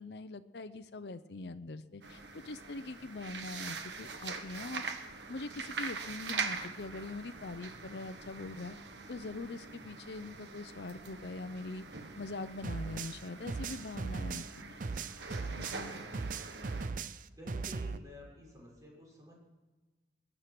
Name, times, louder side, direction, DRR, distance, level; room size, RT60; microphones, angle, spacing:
voice 1, 0.0-4.9 5.3-8.8 9.1-11.8 12.2-14.8 15.5-15.9, left 3 dB, 65° left, 10 dB, 0.6 m, -43 dB
sound 1, 2.0-16.9, right 4 dB, 80° right, 1.5 m, -43 dB
sound 2, 12.6-18.0, right 4 dB, 50° right, 0.6 m, -38 dB
voice 2, 16.0-16.3 17.4-19.4, equal, 20° right, -3 dB, 5.9 m, -52 dB
21.5 x 10.0 x 6.0 m, 1.2 s
head